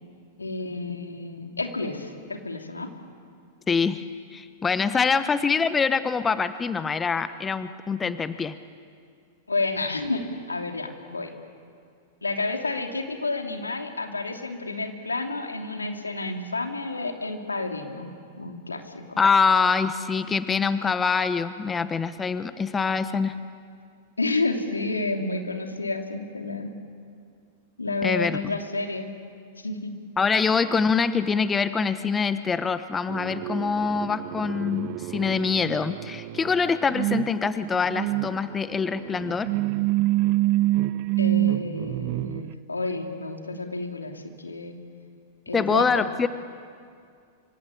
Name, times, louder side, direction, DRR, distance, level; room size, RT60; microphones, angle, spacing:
voice 1, 0.4-2.9 9.5-10.2 10.5-11.3 12.2-18.1 18.4-19.2 24.2-26.7 27.8-29.1 29.6-29.9 41.2-44.7 45.5-46.0, left 3 dB, 90° left, 4 dB, 3.0 m, -30 dB
voice 2, 3.7-4.0 4.3-8.5 19.2-23.3 28.0-28.4 30.2-39.5 45.5-46.3, left 5 dB, 20° left, 12 dB, 1.1 m, -24 dB
sound 1, 33.1-42.5, right 17 dB, 45° right, 0.7 m, -27 dB
26.5 x 25.5 x 8.6 m, 2.3 s
figure-of-eight pair, 100°, 0 cm